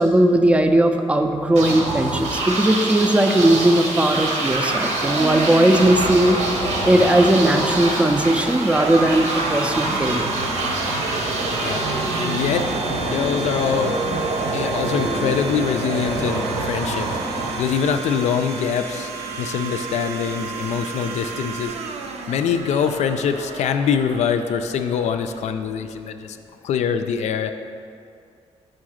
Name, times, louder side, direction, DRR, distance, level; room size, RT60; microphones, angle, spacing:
voice 1, 0.0-6.4 6.8-10.3, right 1 dB, 10° right, 6 dB, 0.4 m, -18 dB
sound 1, 1.5-18.3, right 2 dB, 85° right, 1.1 m, -25 dB
Domestic sounds home sounds, 7.7-26.1, right 4 dB, 70° right, 0.6 m, -33 dB
voice 2, 11.6-12.6 13.0-14.0 14.5-17.1 17.3-19.1 19.4-21.7 22.3-26.4 26.6-27.5, left 7 dB, 75° left, 7 dB, 0.4 m, -24 dB
6.5 x 3.8 x 6.3 m, 2.4 s
cardioid pair, 145°, 12 cm